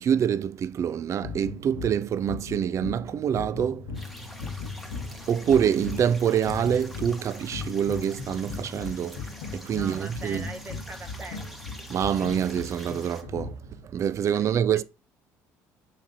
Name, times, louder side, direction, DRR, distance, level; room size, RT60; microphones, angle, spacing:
voice 1, 0.0-3.9 5.1-10.5 11.9-13.6 13.8-14.8, right 8 dB, 45° right, 0.4 m, -26 dB
sound 1, 1.2-13.9, left 4 dB, 85° left, 1.0 m, -38 dB
sound 2, 3.9-13.2, equal, ahead, 1.4 m, -46 dB
voice 2, 9.7-11.6 14.3-14.6, right 3 dB, 25° right, 1.3 m, -41 dB
7.1 x 5.1 x 2.7 m
supercardioid pair, 75°, 7 cm